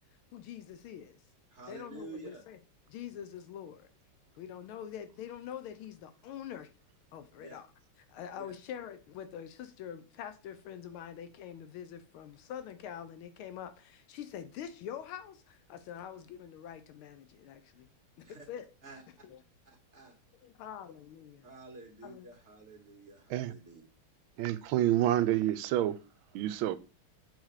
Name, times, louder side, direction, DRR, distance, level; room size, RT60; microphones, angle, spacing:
voice 1, 0.3-1.2 1.7-2.6 2.9-3.9 4.4-6.7 7.1-7.7 8.1-17.9 18.2-18.7 19.2-19.4 20.4-21.4 22.0-22.3, left 9 dB, 85° left, 1.5 m, -45 dB
voice 2, 1.5-2.4 7.4-7.6 8.4-8.5 18.2-18.4 18.8-19.0 19.6-20.1 21.4-23.8, right 3 dB, 35° right, 1.8 m, -49 dB
voice 3, 24.4-26.0 26.3-26.8, right 13 dB, 80° right, 1.4 m, -28 dB
8.1 x 4.0 x 4.8 m
omnidirectional pair, 2.3 m